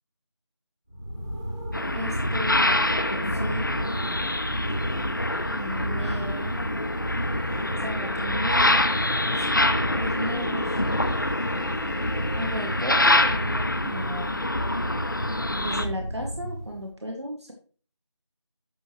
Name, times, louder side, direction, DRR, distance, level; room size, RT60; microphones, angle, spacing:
sound 1, 0.9-16.9, equal, 10° right, 1.3 m, -32 dB
sound 2, 1.7-15.9, left 1 dB, 40° left, 0.6 m, -26 dB
voice 1, 1.9-4.3 5.5-6.5 7.8-8.8 9.3-10.7 12.4-14.4 15.6-17.5, equal, 65° right, 2 dB, 2.0 m, -35 dB
sound 3, 6.5-12.8, left 1 dB, 70° left, 1.1 m, -41 dB
11.0 x 6.1 x 3.1 m, 0.40 s
figure-of-eight pair, 175°, 15 cm